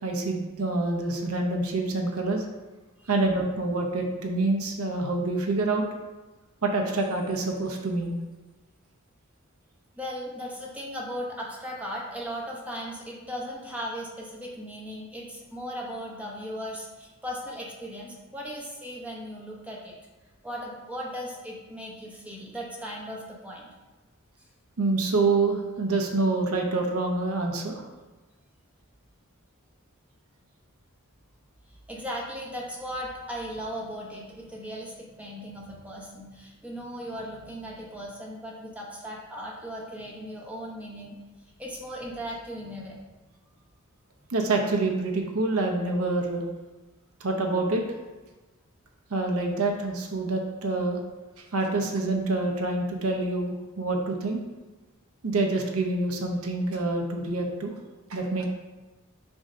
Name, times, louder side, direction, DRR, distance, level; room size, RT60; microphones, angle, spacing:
voice 1, 0.0-2.4 3.1-5.8 6.6-8.2 24.8-27.8 44.3-46.4 47.2-47.8 49.1-51.0 51.5-54.4 55.2-57.7 58.1-58.4, right 2 dB, 90° right, 2 dB, 0.8 m, -26 dB
voice 2, 10.0-19.9 20.4-23.7 31.9-41.2 41.6-43.0, equal, 5° right, -3 dB, 0.8 m, -37 dB
6.9 x 2.8 x 5.0 m, 1.2 s
head